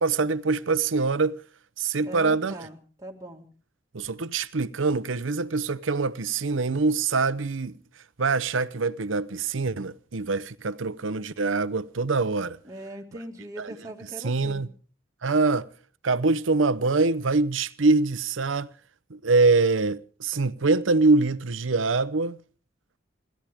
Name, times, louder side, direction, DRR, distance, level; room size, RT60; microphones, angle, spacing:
voice 1, 0.0-1.4 1.8-2.7 3.9-7.8 8.2-12.6 13.6-13.7 14.2-14.7 15.2-15.7 16.0-18.7 19.1-22.4, right 3 dB, 90° right, 0.8 m, -24 dB
voice 2, 2.0-3.5 12.6-14.6, right 1 dB, 15° right, 2.0 m, -41 dB
27.0 x 13.5 x 3.5 m
head